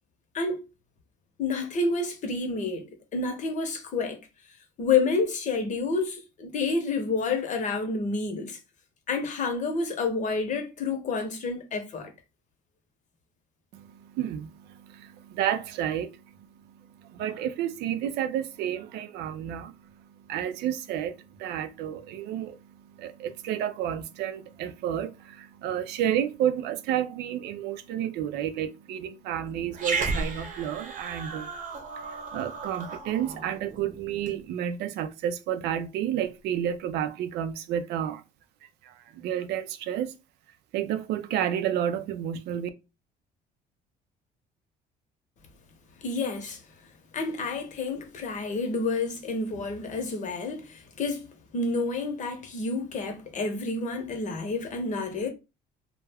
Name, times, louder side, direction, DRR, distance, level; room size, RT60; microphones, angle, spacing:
voice 1, 0.3-0.7 1.4-4.2 4.8-8.6 9.1-12.1 46.0-46.6 47.1-55.3, left 3 dB, 45° left, 0.8 m, -29 dB
voice 2, 13.7-31.5 32.3-38.2 38.8-40.1 40.7-42.7, right 10 dB, 80° right, 0.4 m, -31 dB
Growling, 29.7-34.4, right 4 dB, 50° right, 0.8 m, -34 dB
2.2 x 2.1 x 3.3 m
cardioid pair, 110°, 17 cm